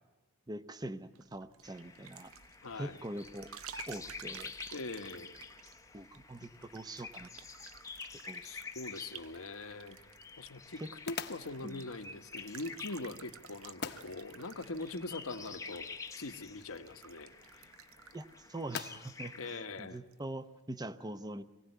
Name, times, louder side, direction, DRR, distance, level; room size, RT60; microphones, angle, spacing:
voice 1, 0.5-2.3 2.7-3.5 3.9-4.5 5.9-7.3 8.3-8.4 10.8-10.9 11.6-11.9 18.1-21.4, right 1 dB, 20° right, 12 dB, 0.7 m, -43 dB
sound 1, 1.1-19.5 19.8-20.2, right 8 dB, 75° right, 0.8 m, -54 dB
sound 2, 1.6-19.6, left 4 dB, 15° left, 0.8 m, -49 dB
voice 2, 2.6-3.0 4.7-5.4 8.4-10.0 10.4-10.8 11.0-15.9 16.2-17.3 19.4-20.0, left 3 dB, 75° left, 7 dB, 1.2 m, -42 dB
sound 3, 8.9-20.6, left 6 dB, 50° left, 1.0 m, -49 dB
24.0 x 16.5 x 9.3 m, 1.2 s
head